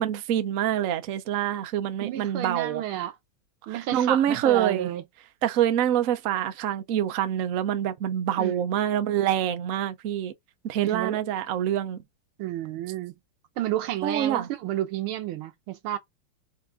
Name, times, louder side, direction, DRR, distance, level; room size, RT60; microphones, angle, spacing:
voice 1, 0.0-2.8 3.7-4.9 5.4-10.3 10.6-12.0 14.0-14.5, right 10 dB, 65° right, 0.8 m, -26 dB
voice 2, 2.0-3.1 3.7-5.0 8.4-8.6 10.8-11.2 12.4-13.1 13.6-16.0, right 13 dB, 90° right, 1.6 m, -31 dB
4.7 x 2.6 x 3.5 m
omnidirectional pair, 2.3 m